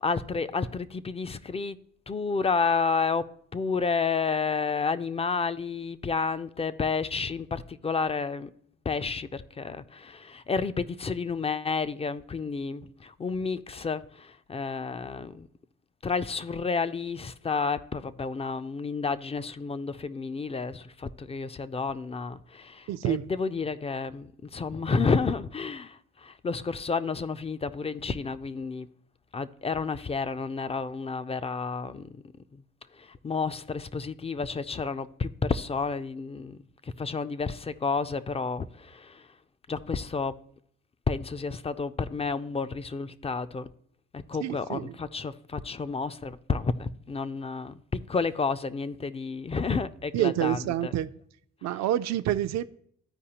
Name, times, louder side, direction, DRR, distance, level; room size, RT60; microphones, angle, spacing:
voice 1, 0.0-1.8 2.1-8.5 8.9-15.5 16.0-28.9 29.3-32.2 32.5-32.6 33.0-36.6 36.8-39.3 39.7-40.4 41.1-43.7 44.1-50.9, left 4 dB, 20° left, 0.3 m, -31 dB
voice 2, 22.9-23.3 44.4-44.9 50.1-51.1 51.6-52.6, right 12 dB, 60° right, 0.4 m, -27 dB
13.5 x 4.7 x 2.8 m
cardioid pair, 90°, 30 cm